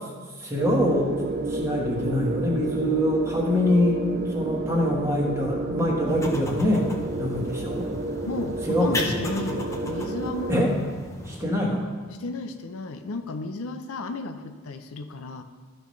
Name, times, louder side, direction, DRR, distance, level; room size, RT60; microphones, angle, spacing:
voice 1, 0.4-1.1 1.5-4.0 4.3-7.9 8.7-9.2 10.5-10.7 11.2-11.9, left 1 dB, 15° right, -2 dB, 1.2 m, -24 dB
sound 1, 0.6-10.6, right 2 dB, 40° right, 0.3 m, -31 dB
voice 2, 5.7-6.3 8.3-10.8 12.2-15.4, left 3 dB, 90° left, 7 dB, 0.6 m, -33 dB
sound 2, 6.1-11.5, left 2 dB, 15° left, 0.6 m, -36 dB
12.5 x 5.3 x 3.2 m, 1.4 s
head